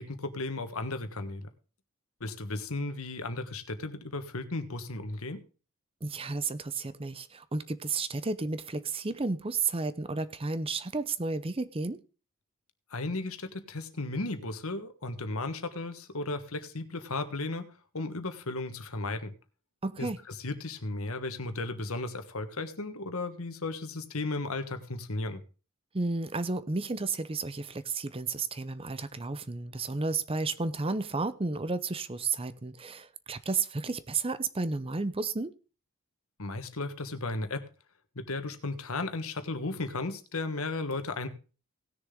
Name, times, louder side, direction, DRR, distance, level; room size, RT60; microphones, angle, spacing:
voice 1, 0.0-1.5 2.2-5.4 12.9-19.3 20.0-20.1 20.4-25.4 36.4-37.6 38.1-41.3, left 2 dB, 75° left, 1.5 m, -35 dB
voice 2, 6.0-12.0 19.8-20.2 25.9-35.5, right 3 dB, 25° right, 0.7 m, -32 dB
18.0 x 6.8 x 3.8 m
head